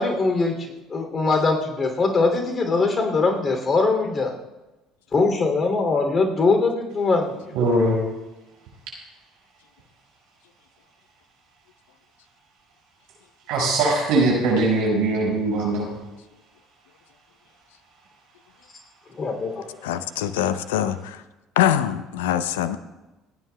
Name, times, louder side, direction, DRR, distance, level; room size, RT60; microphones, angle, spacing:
voice 1, 0.0-4.3 5.1-7.5 19.1-19.6, left 3 dB, 35° left, 4 dB, 2.9 m, -22 dB
voice 2, 7.5-8.0 13.5-15.9, right 2 dB, 65° right, -2 dB, 5.6 m, -21 dB
voice 3, 19.8-21.2 21.6-22.8, left 11 dB, 75° left, 13 dB, 0.6 m, -23 dB
29.5 x 9.9 x 2.3 m, 1.1 s
hypercardioid pair, 60°, 0 cm